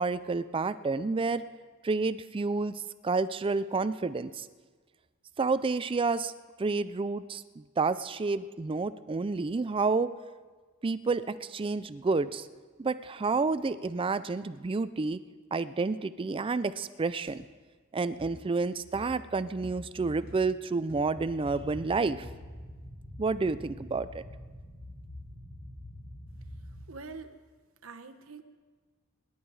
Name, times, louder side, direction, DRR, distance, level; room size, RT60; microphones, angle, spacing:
voice 1, 0.0-1.4 1.8-4.5 5.4-6.3 6.6-10.1 10.8-12.5 12.8-15.2 15.5-17.5 17.9-22.3 23.2-24.2, right 4 dB, 25° right, 14 dB, 0.4 m, -30 dB
sound 1, 17.3-17.4 18.2-18.5 18.9-19.3 19.6-20.0 20.3-20.6 20.9-22.0 22.2-22.6, equal, 45° right, 2.6 m, -49 dB
sound 2, 21.1-26.8, left 1 dB, 30° left, 4.1 m, -46 dB
voice 2, 26.9-27.4 27.8-28.4, right 4 dB, 70° right, 7 dB, 1.1 m, -44 dB
25.0 x 11.0 x 4.8 m, 1.4 s
head